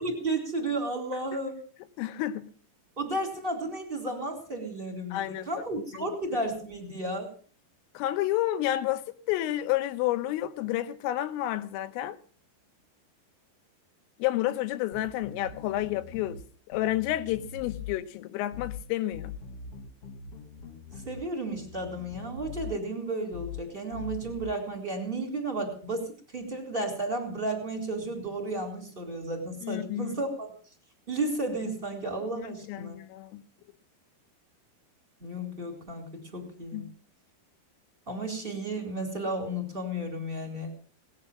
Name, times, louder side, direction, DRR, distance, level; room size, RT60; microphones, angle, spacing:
voice 1, 0.0-1.6 3.0-7.3 21.0-30.5 31.1-33.0 35.2-36.9 38.1-40.7, right 2 dB, 10° right, 3.1 m, -33 dB
voice 2, 2.0-2.5 5.1-5.5 5.9-6.1 8.0-12.2 14.2-16.4 16.7-19.4 29.6-30.1 32.4-33.4 36.7-36.9, left 14 dB, 80° left, 3.5 m, -30 dB
sound 1, 14.9-16.4 16.7-18.0 18.5-18.8 19.1-21.2 21.5-22.8 23.3-23.6 23.9-24.5, left 6 dB, 55° left, 1.7 m, -42 dB
19.0 x 9.6 x 7.3 m
omnidirectional pair, 5.9 m